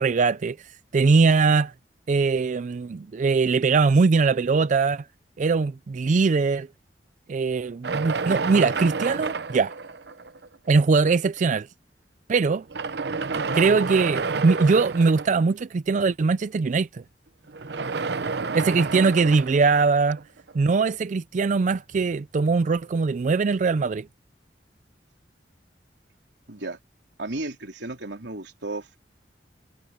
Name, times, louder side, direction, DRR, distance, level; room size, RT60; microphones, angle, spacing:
voice 1, 0.0-1.7 2.1-5.1 5.4-6.7 7.3-9.7 10.7-11.7 12.3-12.6 13.3-17.0 18.5-20.2 20.5-24.1, right 4 dB, 45° right, 0.4 m, -21 dB
sound 1, 7.8-10.5 11.4-11.5 12.6-15.6 17.5-20.5, right 4 dB, 70° right, 0.8 m, -30 dB
voice 2, 18.1-18.5 26.5-26.8 27.2-29.0, right 2 dB, 85° right, 3.3 m, -34 dB
head